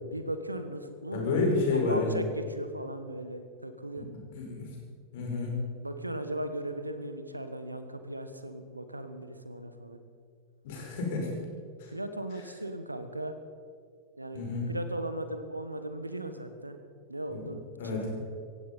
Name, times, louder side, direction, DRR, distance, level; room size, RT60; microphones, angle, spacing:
voice 1, 0.0-4.1 5.8-10.0 11.9-13.3 14.2-16.8 17.1-18.1, right 1 dB, 85° right, 9 dB, 1.4 m, -38 dB
voice 2, 1.1-2.3 4.3-4.7 5.1-5.6 10.6-11.3 14.3-14.7 17.3-17.4 17.8-18.1, left 3 dB, 55° left, -1 dB, 5.5 m, -29 dB
17.0 x 15.5 x 5.5 m, 2.2 s
figure-of-eight pair, 90°, 0 cm